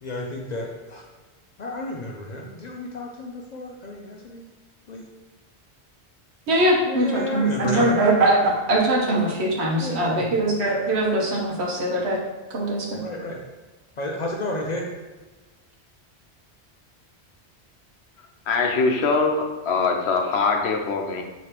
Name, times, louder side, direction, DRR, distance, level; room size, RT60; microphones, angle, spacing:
voice 1, 0.0-1.0 1.6-4.4 4.9-5.1 6.8-8.0 9.8-10.2 13.0-13.4 14.0-14.8, left 1 dB, 55° left, -1 dB, 0.5 m, -31 dB
voice 2, 6.5-12.2 12.5-13.0, right 1 dB, 75° right, -2 dB, 1.2 m, -22 dB
voice 3, 18.5-21.2, left 4 dB, 75° left, 3 dB, 0.9 m, -22 dB
4.9 x 3.1 x 2.9 m, 1.2 s
omnidirectional pair, 1.1 m